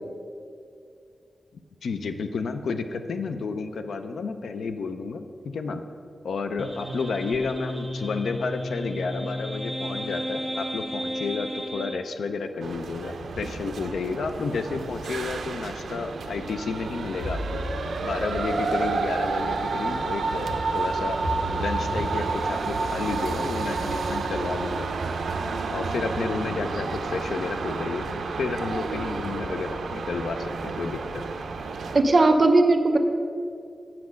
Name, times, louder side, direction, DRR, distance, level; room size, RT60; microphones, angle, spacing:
voice 1, 1.8-5.8 6.2-17.4 18.0-21.2 21.5-24.9 25.7-31.2, left 4 dB, 85° left, 8 dB, 0.5 m, -31 dB
sound 1, 6.6-12.0, equal, 5° left, 0.9 m, -33 dB
sound 2, 12.6-32.0, right 4 dB, 75° right, 0.6 m, -30 dB
sound 3, 12.8-13.6 14.2-14.3 15.2-15.3 17.2-22.9 23.2-24.2 25.4-25.5 26.0-26.4 26.8-27.6 28.0-30.4, equal, 45° left, 2.2 m, -38 dB
voice 2, 31.9-33.0, right 2 dB, 35° right, 6 dB, 0.6 m, -18 dB
7.7 x 5.9 x 6.3 m, 2.4 s
wide cardioid pair, 170°, 0 cm